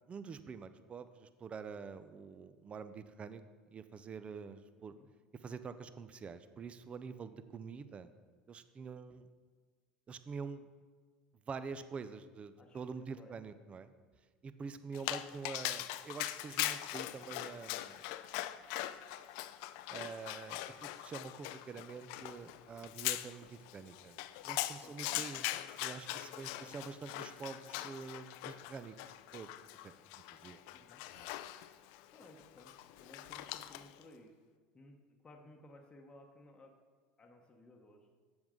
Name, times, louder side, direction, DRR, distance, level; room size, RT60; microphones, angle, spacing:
voice 1, 0.1-3.4 3.7-4.9 5.4-8.1 8.5-9.3 10.1-10.7 11.5-13.9 14.4-18.0 19.9-24.2 24.4-25.4 25.8-29.5 29.8-29.9 30.3-30.6 31.1-31.3, right 5 dB, 30° right, 12 dB, 0.4 m, -46 dB
voice 2, 12.6-13.4 24.8-25.3 26.4-26.8 27.1-27.2 30.7-31.0 32.1-34.3 34.7-36.8 37.2-38.1, left 1 dB, 20° left, 1 dB, 0.9 m, -58 dB
Dog, 14.9-34.0, left 15 dB, 65° left, 0.3 m, -42 dB
7.8 x 7.1 x 3.7 m, 1.5 s
hypercardioid pair, 85°, 4 cm